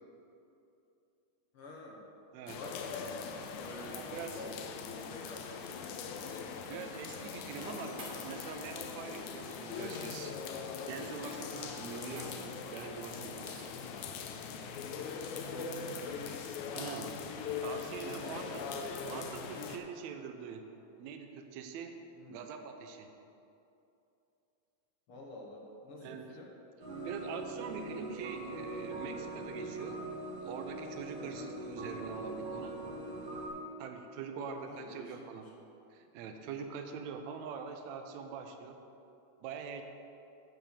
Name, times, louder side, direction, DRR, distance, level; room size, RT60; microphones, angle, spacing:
voice 1, 1.5-2.1 2.5-3.3 3.6-6.5 11.9-12.4 15.5-16.3 17.7-18.4 22.1-22.4 25.1-26.5 31.2-31.5 34.5-35.5, left 2 dB, 60° left, -1 dB, 1.7 m, -49 dB
sound 1, 2.5-19.8, left 6 dB, 90° left, 2.1 m, -41 dB
voice 2, 3.9-4.4 6.7-10.4 10.9-13.6 16.7-17.2 17.6-18.6 19.0-20.7 21.0-21.9 22.3-23.1 26.0-26.3 27.0-30.0 30.4-32.8 33.8-35.5 35.9-38.8 39.4-39.8, right 6 dB, 75° right, 5 dB, 1.9 m, -44 dB
sound 2, 6.3-10.6 11.0-14.0, right 2 dB, 40° right, 1.4 m, -55 dB
sound 3, 26.8-33.5, right 2 dB, 55° right, 3.4 m, -41 dB
11.0 x 5.6 x 6.7 m, 2.8 s
omnidirectional pair, 3.4 m